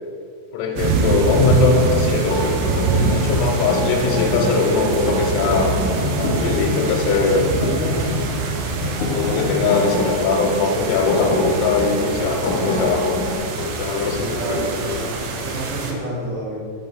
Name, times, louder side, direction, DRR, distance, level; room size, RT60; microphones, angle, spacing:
voice 1, 0.5-2.4 2.9-7.5 8.8-13.2 13.6-15.1, left 4 dB, 90° left, 0 dB, 3.2 m, -21 dB
sound 1, 0.8-15.9, right 4 dB, 85° right, 2.5 m, -24 dB
sound 2, 2.3-13.4, left 2 dB, 75° left, 1.8 m, -26 dB
voice 2, 14.3-16.6, right 1 dB, 70° right, -12 dB, 3.2 m, -29 dB
7.8 x 3.8 x 3.9 m, 2.2 s
omnidirectional pair, 5.7 m